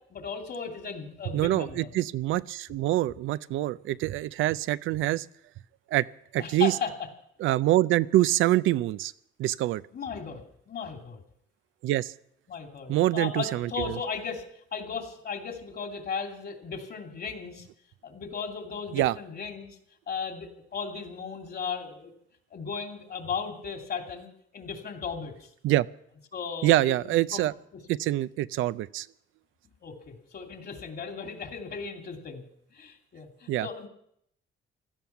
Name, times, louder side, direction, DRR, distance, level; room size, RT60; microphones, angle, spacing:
voice 1, 0.1-1.9 6.4-6.9 9.9-11.2 12.5-14.4 14.7-17.7 18.0-19.8 20.1-22.1 22.5-25.5 26.3-27.5 29.8-32.4 32.7-33.9, left 5 dB, 55° left, 4 dB, 2.8 m, -36 dB
voice 2, 1.3-5.3 5.9-6.1 6.3-6.7 7.4-9.1 9.4-9.8 11.8-12.1 12.9-14.0 18.9-19.1 25.6-25.9 26.6-27.5 27.9-29.1 33.5-33.7, right 15 dB, 85° right, 16 dB, 0.5 m, -25 dB
16.5 x 13.0 x 5.9 m, 0.71 s
cardioid pair, 90°, 20 cm